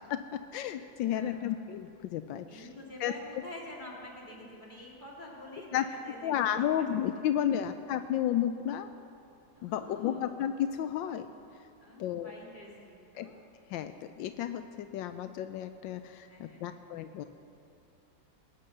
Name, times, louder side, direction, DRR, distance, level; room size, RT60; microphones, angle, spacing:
voice 1, 0.1-2.7 3.0-3.1 5.7-5.8 6.2-8.9 9.6-11.3 12.0-12.3 13.1-13.3 13.7-17.2, left 10 dB, 85° left, 9 dB, 1.3 m, -32 dB
voice 2, 1.1-1.4 2.5-6.3 6.6-6.9 7.1-7.7 9.6-10.3 11.8-13.4 16.3-16.7, left 1 dB, 25° left, -4 dB, 2.9 m, -48 dB
19.5 x 9.3 x 6.7 m, 2.5 s
omnidirectional pair, 2.0 m